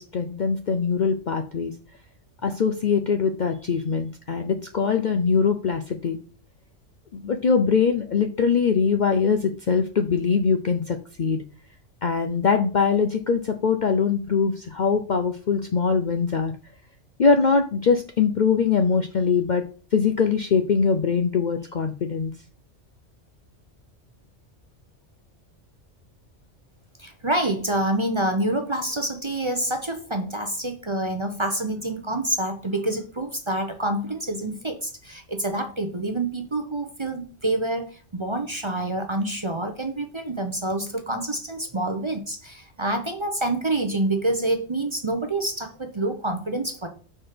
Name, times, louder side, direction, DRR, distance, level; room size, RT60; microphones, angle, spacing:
voice 1, 0.1-1.7 2.4-6.2 7.1-11.4 12.0-16.5 17.2-19.6 19.9-22.3, left 5 dB, 50° left, 6 dB, 0.6 m, -22 dB
voice 2, 27.0-46.9, right 1 dB, 30° right, 6 dB, 0.7 m, -27 dB
5.9 x 4.4 x 5.0 m, 0.39 s
omnidirectional pair, 1.3 m